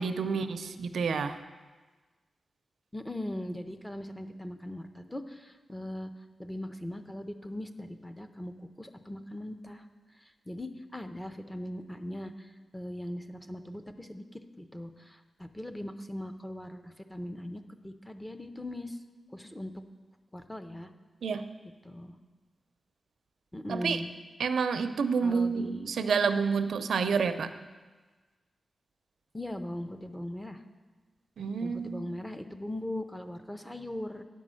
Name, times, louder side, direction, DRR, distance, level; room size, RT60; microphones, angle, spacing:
voice 1, 0.0-1.4 21.2-21.5 23.7-24.0 24.4-27.5 31.4-32.0, right 5 dB, 90° right, 10 dB, 0.5 m, -29 dB
voice 2, 2.9-6.1 6.4-9.8 10.2-19.0 19.3-19.7 20.3-20.9 21.8-22.2 23.5-24.1 25.2-25.9 29.3-30.6 31.6-34.2, left 1 dB, 10° left, 8 dB, 0.5 m, -40 dB
9.3 x 5.2 x 7.5 m, 1.3 s
wide cardioid pair, 150°, 0 cm